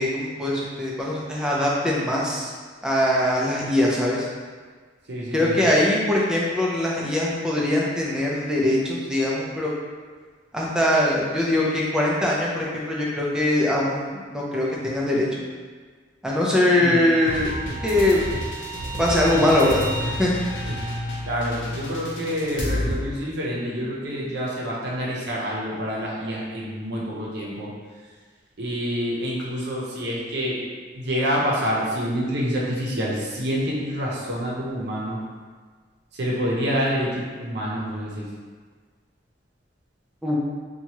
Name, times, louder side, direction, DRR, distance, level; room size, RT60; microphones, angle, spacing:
voice 1, 0.0-2.5 2.8-4.3 5.3-9.7 10.5-15.3 16.2-17.5 17.8-18.2 19.0-19.8 20.2-20.3 40.2-40.4, left 1 dB, 5° right, -5 dB, 0.4 m, -22 dB
voice 2, 5.1-5.7 16.7-17.0 21.3-27.7 28.6-30.6 31.0-35.2 36.2-38.3, equal, 65° right, -5 dB, 0.7 m, -27 dB
sound 1, 17.2-22.9, equal, 80° left, 0.6 m, -30 dB
2.8 x 2.3 x 2.9 m, 1.5 s
head